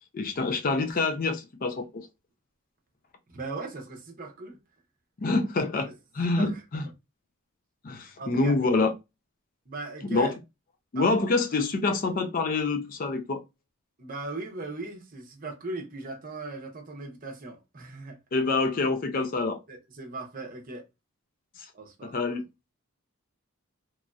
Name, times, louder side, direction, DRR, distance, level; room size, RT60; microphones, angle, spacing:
voice 1, 0.1-2.1 5.2-6.9 7.8-8.9 10.0-10.3 10.9-13.4 18.3-19.6 21.6-21.7 22.0-22.4, left 3 dB, 40° left, 0.4 m, -26 dB
voice 2, 3.3-4.6 6.2-6.6 8.2-8.6 9.7-10.4 10.9-11.1 14.0-18.2 19.7-20.8 21.7-22.2, right 3 dB, 40° right, 0.7 m, -38 dB
3.0 x 2.6 x 2.3 m
head